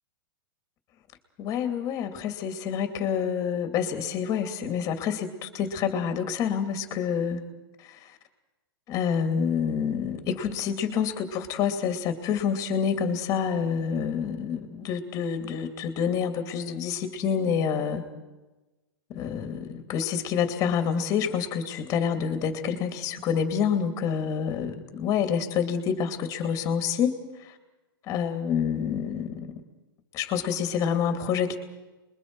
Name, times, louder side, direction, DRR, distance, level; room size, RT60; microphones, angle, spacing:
voice 1, 1.4-7.4 8.9-18.0 19.1-27.1 28.1-29.6 30.1-31.6, left 7 dB, 25° left, 7 dB, 2.5 m, -27 dB
30.0 x 22.0 x 4.7 m, 1.1 s
hypercardioid pair, 145°, 12 cm